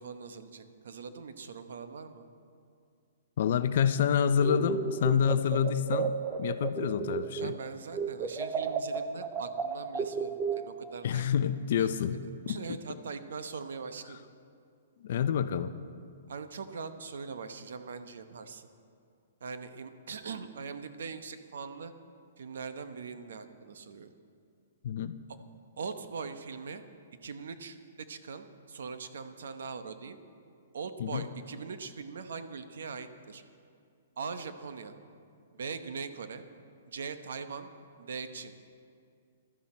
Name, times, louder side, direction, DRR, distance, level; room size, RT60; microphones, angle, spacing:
voice 1, 0.0-2.2 7.4-11.2 11.8-12.1 12.5-14.2 16.3-18.7 19.4-21.9 22.4-24.1 25.8-26.8 27.2-27.8 28.1-30.2 30.7-33.4 34.2-34.9 35.5-36.4 36.9-37.7 38.0-38.5, right 5 dB, 75° right, 9 dB, 0.9 m, -41 dB
voice 2, 3.4-6.1 6.4-7.5 11.0-12.2 12.5-12.8 15.0-15.7 24.8-25.1 31.0-31.2, left 8 dB, 50° left, 12 dB, 0.5 m, -28 dB
sound 1, 4.4-7.6 7.9-11.0, right 6 dB, 10° right, 0.5 m, -33 dB
15.5 x 12.5 x 4.3 m, 2.3 s
hypercardioid pair, 170°, 0 cm